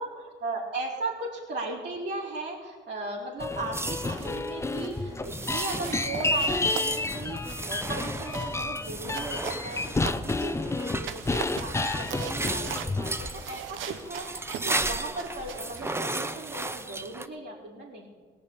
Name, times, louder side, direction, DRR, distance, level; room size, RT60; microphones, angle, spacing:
voice 1, 0.0-18.1, right 2 dB, 55° right, -8 dB, 4.3 m, -37 dB
sound 1, 3.4-13.5 13.8-14.0 14.8-15.1 15.4-15.9, left 2 dB, 15° left, 0.6 m, -31 dB
sound 2, 3.7-17.3, right 2 dB, 10° right, 0.9 m, -36 dB
sound 3, 4.0-4.4 4.7-5.0 5.4-10.5 10.9-16.8, right 9 dB, 80° right, 0.9 m, -41 dB
17.5 x 6.3 x 9.9 m, 1.5 s
cardioid pair, 90°, 20 cm